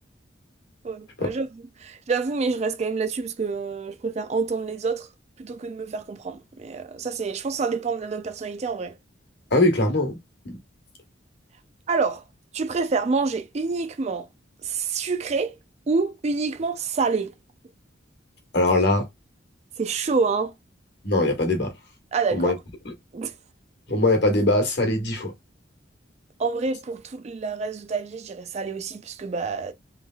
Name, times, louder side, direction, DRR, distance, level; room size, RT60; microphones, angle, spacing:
voice 1, 0.8-5.1 5.4-8.9 11.9-12.2 12.5-14.3 14.6-15.6 15.9-17.3 19.8-20.5 22.1-22.6 23.1-23.3 26.4-29.7, right 4 dB, 35° right, 0.4 m, -27 dB
voice 2, 9.5-10.2 10.4-10.6 18.5-19.0 21.0-21.7 22.3-22.5 23.9-25.3, left 2 dB, 60° left, 1.2 m, -21 dB
3.2 x 3.0 x 2.3 m
head